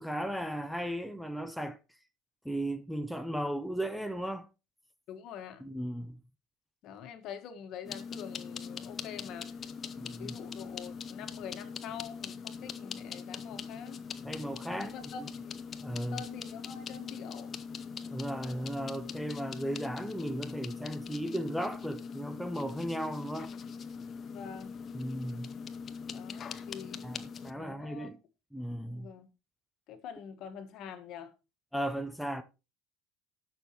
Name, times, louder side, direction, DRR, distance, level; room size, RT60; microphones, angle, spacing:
voice 1, 0.0-1.8 2.4-4.5 5.6-6.2 10.0-10.4 14.2-14.9 15.2-15.3 15.8-16.2 18.0-23.5 24.9-25.5 27.0-28.2 28.5-29.1 31.7-32.4, equal, ahead, 0.7 m, -36 dB
voice 2, 5.1-5.6 6.8-9.5 10.0-14.0 14.7-15.6 16.1-17.6 24.3-24.8 26.1-27.1 27.5-28.1 28.9-29.3 29.9-31.3, left 8 dB, 60° left, 1.6 m, -45 dB
sound 1, 7.8-27.5, left 6 dB, 40° left, 0.8 m, -42 dB
18.5 x 6.3 x 3.0 m
supercardioid pair, 105°, 0 cm